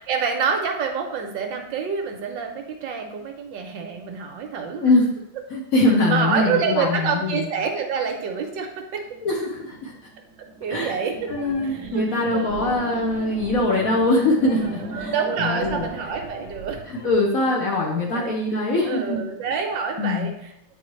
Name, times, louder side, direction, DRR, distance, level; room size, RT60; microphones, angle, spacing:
voice 1, 0.0-4.9 6.1-9.0 10.6-11.3 11.6-12.0 12.3-12.8 14.9-16.8 17.9-18.4 18.8-20.3, right 6 dB, 70° right, 4 dB, 1.4 m, -27 dB
voice 2, 4.8-5.2 5.5-7.5 9.2-9.9 10.7-10.9 11.3-15.1 15.4-15.9 16.9-19.2 20.0-20.3, left 2 dB, 55° left, -2 dB, 1.1 m, -22 dB
sound 1, 9.0-16.0, right 4 dB, 55° right, 1.0 m, -38 dB
sound 2, 11.1-17.1, right 2 dB, 75° left, 2.4 m, -41 dB
8.6 x 4.5 x 3.1 m, 0.81 s
omnidirectional pair, 2.2 m